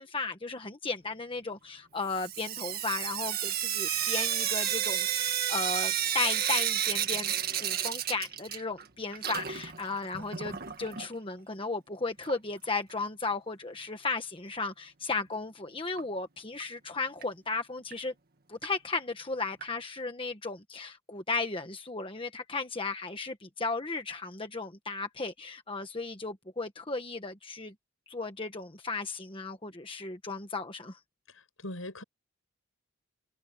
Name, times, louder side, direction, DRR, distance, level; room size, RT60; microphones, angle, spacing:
voice 1, 0.0-7.3 7.6-18.1 18.5-27.7 28.1-31.0, left 3 dB, 25° left, 1.3 m, -35 dB
Sink (filling or washing) / Drip, 2.1-8.9 9.1-11.1 12.2-12.3 12.6-12.7 13.0-13.1 16.0-16.1 16.6-16.7 17.2-17.3 17.9-18.0 18.6-18.7 19.6-19.7, right 10 dB, 45° right, 1.9 m, -31 dB
voice 2, 31.3-32.0, left 1 dB, 75° left, 7.9 m, -41 dB
head